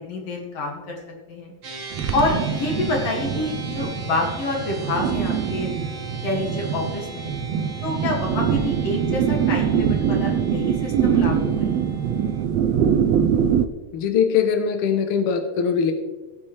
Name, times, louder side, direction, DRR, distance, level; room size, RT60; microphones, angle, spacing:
voice 1, 0.1-1.0 1.3-1.5 2.1-5.7 6.2-7.3 7.8-11.8, left 2 dB, 55° left, 0 dB, 3.0 m, -27 dB
sound 1, 1.6-12.5, right 2 dB, 45° right, 1.9 m, -39 dB
sound 2, 1.9-13.7, right 8 dB, 80° right, 1.5 m, -23 dB
voice 2, 13.9-15.9, left 7 dB, 70° left, 6 dB, 1.3 m, -21 dB
17.5 x 8.5 x 3.2 m, 1.3 s
omnidirectional pair, 3.5 m